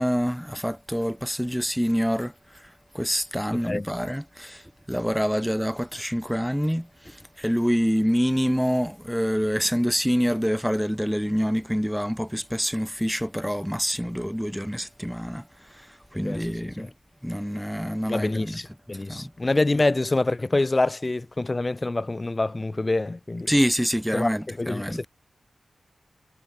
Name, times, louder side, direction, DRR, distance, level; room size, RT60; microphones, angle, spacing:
voice 1, 0.0-16.9 17.2-19.3 23.5-25.0, equal, ahead, 4.0 m, -26 dB
voice 2, 18.1-23.5 24.1-25.1, left 2 dB, 30° left, 3.7 m, -26 dB
wide cardioid pair, 85°, 0 cm